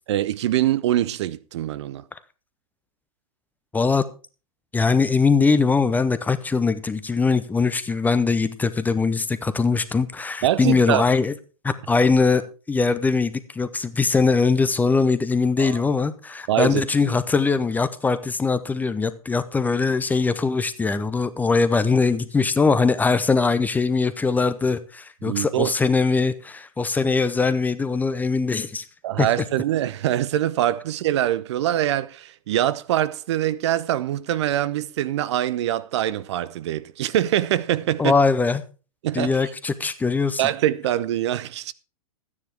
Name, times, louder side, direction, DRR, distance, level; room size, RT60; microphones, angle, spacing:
voice 1, 0.1-2.0 10.4-11.0 15.6-15.8 16.5-16.8 25.2-25.7 29.0-38.1 39.0-39.5 40.4-41.7, right 12 dB, 50° right, 0.7 m, -24 dB
voice 2, 3.7-4.0 4.7-11.3 11.6-12.4 12.7-28.9 29.2-29.3 38.0-38.6 39.1-40.4, left 4 dB, 10° left, 0.7 m, -21 dB
13.0 x 9.7 x 4.6 m
figure-of-eight pair, 105°, 18 cm